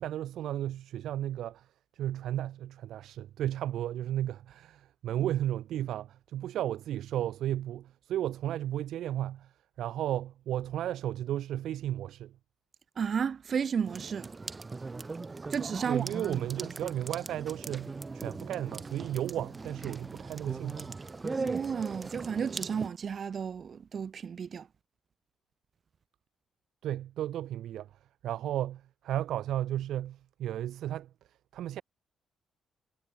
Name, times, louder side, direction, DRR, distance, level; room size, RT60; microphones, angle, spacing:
voice 1, 0.0-1.7 1.9-9.5 9.8-12.3 15.8-21.0 26.8-27.9 28.2-31.1 31.5-31.8, right 12 dB, 75° right, 5.1 m, -34 dB
voice 2, 13.0-14.3 15.5-16.0 21.4-24.7, right 7 dB, 50° right, 1.1 m, -32 dB
sound 1, 13.9-22.9, right 3 dB, 25° right, 5.6 m, -39 dB
cardioid pair, 90°, 0 cm